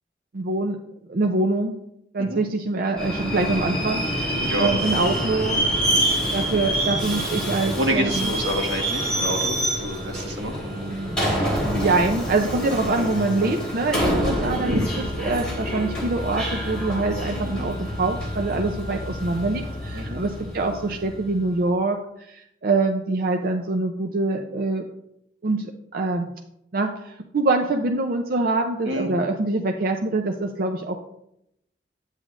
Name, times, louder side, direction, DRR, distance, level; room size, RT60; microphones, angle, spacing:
voice 1, 0.3-0.8 1.1-1.8 2.1-5.6 6.3-8.3 10.6-14.7 15.2-24.8 25.4-26.3 26.7-31.0, right 2 dB, 55° right, 4 dB, 0.5 m, -25 dB
Subway metro underground, 3.0-21.4, equal, 5° left, 3.3 m, -27 dB
voice 2, 4.4-4.7 7.8-10.5 14.7-14.8 19.9-20.2 28.8-29.2, equal, 85° right, 1 dB, 1.6 m, -27 dB
8.9 x 8.1 x 2.5 m, 0.79 s
head